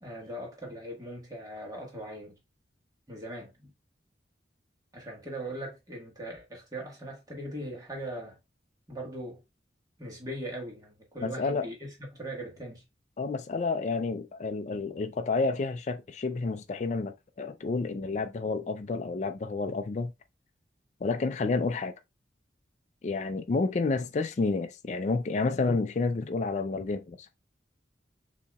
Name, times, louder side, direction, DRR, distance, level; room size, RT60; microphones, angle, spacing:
voice 1, 0.0-2.4 3.1-3.7 4.9-8.4 8.9-9.4 10.0-12.8, right 1 dB, 20° right, 1.4 m, -40 dB
voice 2, 11.2-11.7 13.2-20.1 21.0-21.9 23.0-27.3, left 3 dB, 40° left, 0.3 m, -30 dB
6.7 x 2.8 x 2.3 m
head